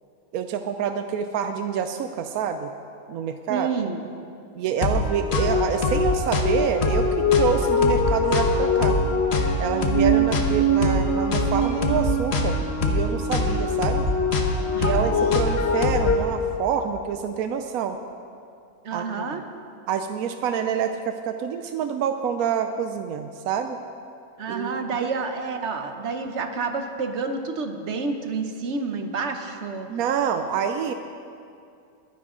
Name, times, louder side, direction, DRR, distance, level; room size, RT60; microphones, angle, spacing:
voice 1, 0.3-2.7 3.1-3.7 4.5-9.0 9.6-12.6 12.8-14.1 14.8-18.0 18.9-19.4 19.9-23.8 24.5-25.1 29.9-30.9, right 7 dB, 85° right, 7 dB, 1.1 m, -27 dB
voice 2, 3.5-4.0 10.3-10.8 14.7-15.1 18.8-19.4 24.4-29.9, right 4 dB, 55° right, 6 dB, 1.1 m, -29 dB
sound 1, 4.8-16.2, left 1 dB, 50° left, 1.2 m, -22 dB
21.5 x 10.5 x 3.7 m, 2.5 s
omnidirectional pair, 1.5 m